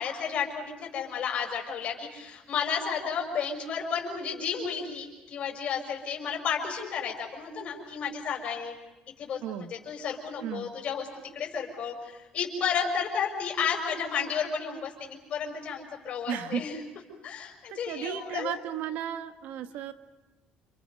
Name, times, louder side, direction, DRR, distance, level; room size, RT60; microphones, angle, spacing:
voice 1, 0.0-8.7 9.2-9.4 9.9-11.1 11.3-16.8 17.2-18.5, left 6 dB, 40° left, 1 dB, 5.4 m, -32 dB
voice 2, 9.4-9.7 10.4-10.7 16.3-16.6 17.7-19.9, right 9 dB, 65° right, 9 dB, 1.6 m, -34 dB
30.0 x 27.5 x 5.5 m, 1.1 s
cardioid pair, 170°, 3 cm